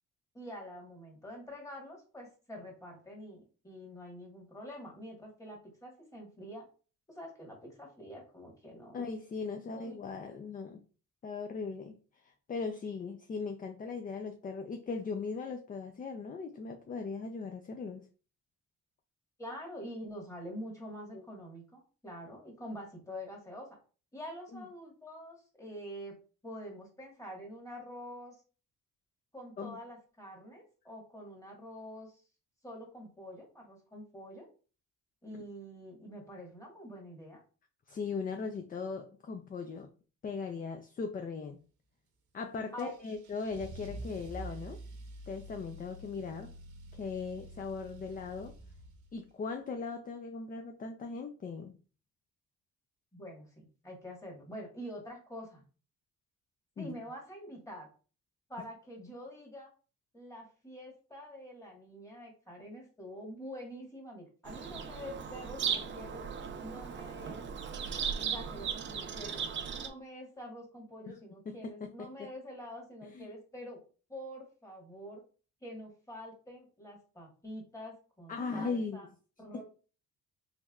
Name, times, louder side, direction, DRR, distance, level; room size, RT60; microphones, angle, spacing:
voice 1, 0.3-6.6 7.1-9.1 9.8-9.9 19.4-23.7 24.1-26.1 26.4-28.4 29.3-32.2 32.6-34.5 35.2-37.4 42.7-42.9 53.1-55.6 56.8-57.9 58.5-59.7 60.1-66.2 66.6-67.5 68.1-69.5 69.8-73.8 74.1-75.2 75.6-79.1 79.4-79.6, equal, 10° left, -1 dB, 1.5 m, -46 dB
voice 2, 8.9-10.8 11.2-11.9 12.2-18.0 21.1-21.2 24.5-24.6 29.6-29.8 37.9-39.9 40.2-41.6 42.3-44.8 45.3-46.5 46.9-48.5 49.1-51.8 56.8-56.9 71.1-71.2 71.5-72.3 73.1-73.3 78.3-79.1 79.5-79.6, left 4 dB, 30° left, 5 dB, 0.4 m, -39 dB
Car / Engine starting / Accelerating revving vroom, 42.8-49.3, right 1 dB, 75° right, 0.8 m, -47 dB
Bird vocalization bird call bird song, 64.5-69.9, right 7 dB, 40° right, 0.5 m, -37 dB
3.3 x 3.0 x 2.3 m, 0.37 s
cardioid pair, 90°, 30 cm